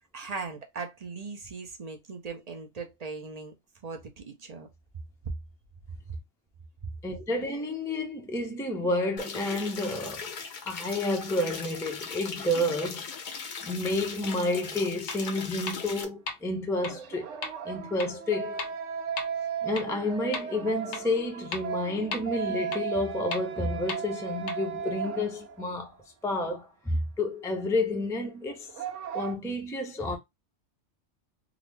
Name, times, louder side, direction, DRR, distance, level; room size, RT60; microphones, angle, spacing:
voice 1, 0.1-3.5 3.8-4.7, right 4 dB, 40° right, 0.6 m, -39 dB
voice 2, 7.0-10.3 10.7-13.1 13.6-17.3 17.6-18.6 19.6-25.9 26.2-28.7 29.1-30.2, left 1 dB, 5° left, 0.4 m, -30 dB
sound 1, 9.2-16.0, left 5 dB, 50° left, 0.6 m, -39 dB
sound 2, 14.2-14.4 16.9-25.8 26.0-26.1 28.5-29.3, right 7 dB, 70° right, 0.9 m, -36 dB
sound 3, 15.1-15.2 15.7-15.8 16.3-16.4 16.8-16.9 17.4-17.5 18.0-18.1 18.6-18.7 19.2-19.3 19.8-19.9 20.3-20.4 20.9-21.0 21.5-21.6 22.1-22.2 22.7-22.8 23.3-23.4 23.9-24.0 24.5-24.6, left 4 dB, 85° left, 1.2 m, -33 dB
3.8 x 2.0 x 3.2 m
omnidirectional pair, 1.3 m